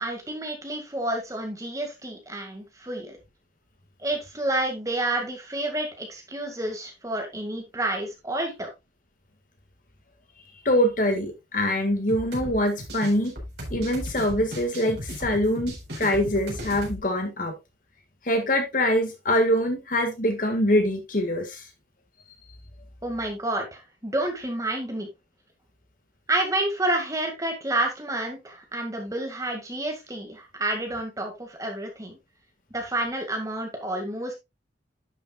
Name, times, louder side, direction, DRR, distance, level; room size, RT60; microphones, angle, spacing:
voice 1, 0.0-3.2 4.0-8.7 23.0-25.1 26.3-32.2 32.7-34.3, right 1 dB, 20° right, 3 dB, 2.0 m, -29 dB
voice 2, 10.7-13.3 13.7-17.5 18.2-21.7, left 1 dB, 50° left, 5 dB, 1.9 m, -24 dB
sound 1, 12.1-17.0, equal, 70° right, 4.2 m, -36 dB
11.0 x 6.9 x 2.4 m, 0.22 s
head